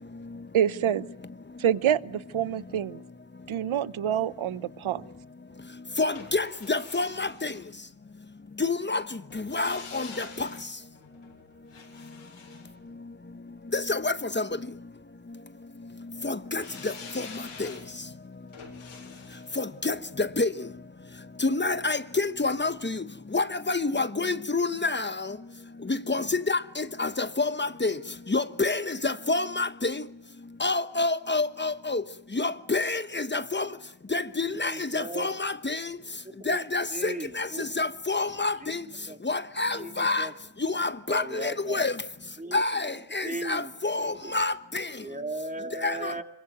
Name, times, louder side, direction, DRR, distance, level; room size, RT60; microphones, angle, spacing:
voice 1, 0.5-1.1 1.6-3.0 3.5-5.1, right 10 dB, 75° right, 1.0 m, -26 dB
voice 2, 6.0-7.5 8.6-9.0 9.3-10.5 13.7-14.5 16.2-17.3 17.6-17.7 19.6-20.5 21.4-23.0 23.3-25.3 25.9-28.0 28.3-30.0 30.6-32.0 32.3-33.7 34.1-36.0 36.5-38.8 39.2-40.3 40.6-41.9 42.5-44.9 45.8-46.2, left 3 dB, 20° left, 1.1 m, -28 dB
sound 1, 6.2-8.3 9.3-13.6 16.6-21.6 21.9-22.0, left 5 dB, 80° left, 8.0 m, -47 dB
voice 3, 34.4-35.3 36.2-36.6 36.9-37.6 38.6-39.2 39.7-40.3 41.1-41.9 42.4-42.6 43.2-43.7 44.0-44.3 45.0-46.2, right 1 dB, 15° right, 2.6 m, -37 dB
26.0 x 23.5 x 9.2 m
cardioid pair, 90°, 49 cm